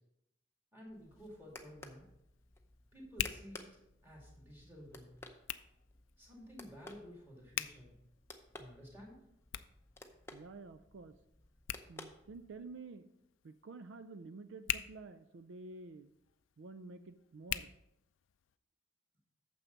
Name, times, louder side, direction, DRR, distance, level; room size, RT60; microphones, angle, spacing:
voice 1, 0.7-2.1 2.9-5.1 6.2-7.9 8.5-9.2, equal, 10° right, -3 dB, 2.5 m, -53 dB
sound 1, 0.8-12.8, left 2 dB, 15° left, 0.6 m, -56 dB
Hands, 0.9-18.6, left 12 dB, 80° left, 0.4 m, -47 dB
voice 2, 10.3-11.2 11.9-13.1 13.4-16.1 16.6-17.7, right 3 dB, 70° right, 11 dB, 0.4 m, -50 dB
9.2 x 7.0 x 4.0 m, 0.81 s
head